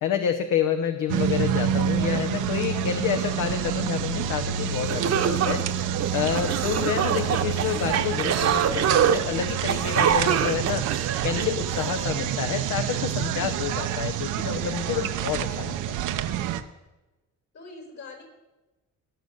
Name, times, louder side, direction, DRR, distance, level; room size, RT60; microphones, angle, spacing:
voice 1, 0.0-5.6 6.1-10.9 11.2-16.0, left 9 dB, 80° left, 6 dB, 0.9 m, -28 dB
sound 1, 1.1-16.6, right 9 dB, 90° right, 0.8 m, -28 dB
sound 2, 4.5-4.6 4.9-12.0, right 8 dB, 60° right, 1.0 m, -25 dB
voice 2, 6.7-7.0 14.8-15.2 17.5-18.2, left 3 dB, 60° left, 3 dB, 4.5 m, -43 dB
17.0 x 6.7 x 6.5 m, 1.1 s
cardioid pair, 90°, 30 cm